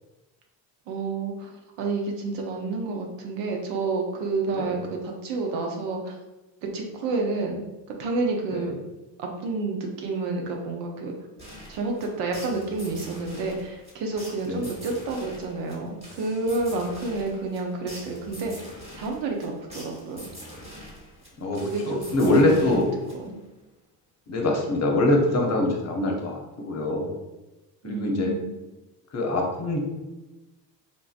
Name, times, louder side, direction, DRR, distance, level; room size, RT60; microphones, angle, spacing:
voice 1, 0.9-1.5 1.8-6.2 6.6-7.6 8.0-8.7 9.2-11.1 11.7-18.7 18.9-20.2 21.6-22.1 22.4-22.8 23.1-23.4 27.8-28.5, right 3 dB, 80° right, 1 dB, 0.8 m, -29 dB
sound 1, 11.4-23.5, equal, 15° right, 1.3 m, -44 dB
voice 2, 21.4-22.9 24.3-27.1 27.8-28.3 29.1-29.8, left 2 dB, 40° left, 1 dB, 0.8 m, -24 dB
3.7 x 2.5 x 2.4 m, 1.1 s
supercardioid pair, 85°, 42 cm